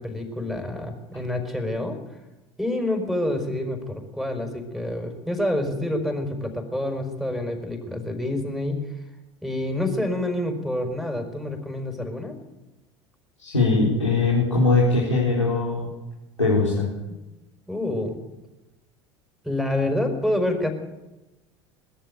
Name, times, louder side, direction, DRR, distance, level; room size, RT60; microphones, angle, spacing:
voice 1, 0.0-2.0 2.6-8.8 9.4-12.3 17.7-18.2 19.4-20.7, left 1 dB, ahead, 5 dB, 5.1 m, -27 dB
voice 2, 13.4-15.9 16.4-16.9, left 3 dB, 85° left, -5 dB, 4.2 m, -21 dB
21.5 x 14.0 x 9.3 m, 1.0 s
figure-of-eight pair, 75°, 15 cm